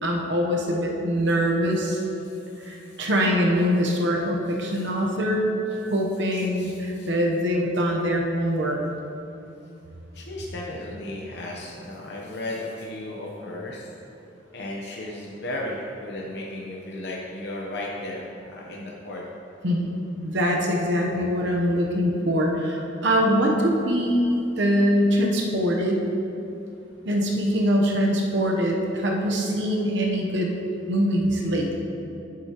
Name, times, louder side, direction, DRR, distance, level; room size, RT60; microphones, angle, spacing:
voice 1, 0.0-2.0 2.6-5.6 5.9-8.8 19.6-26.0 27.0-30.5 30.9-31.8, equal, 70° right, 0 dB, 0.9 m, -23 dB
voice 2, 1.9-3.0 4.5-4.9 5.7-5.8 6.3-7.1 10.1-13.9 14.5-19.2, left 1 dB, 60° left, -3 dB, 0.8 m, -35 dB
10.5 x 7.7 x 2.9 m, 2.9 s
head